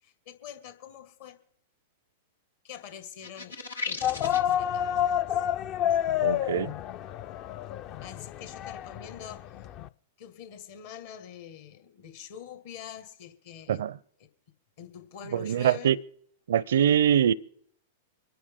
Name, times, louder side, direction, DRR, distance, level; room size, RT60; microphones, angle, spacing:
voice 1, 0.0-1.4 2.6-3.6 3.9-5.0 5.3-5.4 8.0-9.7 10.2-13.9 14.8-15.9, left 9 dB, 60° left, 2.0 m, -45 dB
sound 1, 3.2-4.6, left 4 dB, 85° left, 1.4 m, -36 dB
sound 2, 4.0-9.9, left 11 dB, 40° left, 0.5 m, -29 dB
voice 2, 6.2-6.7 13.7-13.9 15.3-16.0 16.5-17.3, right 9 dB, 70° right, 0.5 m, -23 dB
25.5 x 10.0 x 3.8 m
hypercardioid pair, 105°, 0 cm